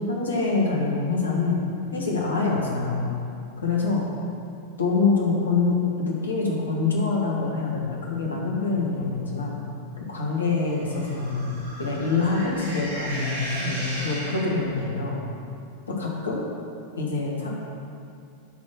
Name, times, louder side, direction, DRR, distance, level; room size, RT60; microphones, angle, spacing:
voice 1, 0.1-1.6 1.9-3.1 3.6-4.1 4.8-9.6 10.1-11.5 11.8-15.2 15.9-16.4 17.0-17.5, left 4 dB, 70° left, -2 dB, 1.7 m, -25 dB
sound 1, 10.6-14.9, right 1 dB, 70° right, 2.0 m, -36 dB
10.0 x 4.3 x 6.4 m, 2.5 s
figure-of-eight pair, 90°, 0 cm